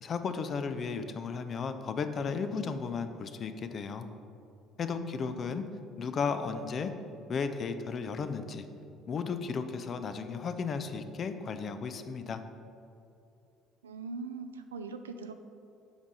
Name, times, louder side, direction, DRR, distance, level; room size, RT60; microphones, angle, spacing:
voice 1, 0.0-4.1 4.8-5.6 6.0-6.9 7.3-8.6 9.1-12.4, left 5 dB, 40° left, 9 dB, 0.5 m, -34 dB
voice 2, 4.8-5.6 13.8-15.3, right 4 dB, 80° right, 8 dB, 0.4 m, -42 dB
7.2 x 4.9 x 5.3 m, 2.7 s
figure-of-eight pair, 55°, 0 cm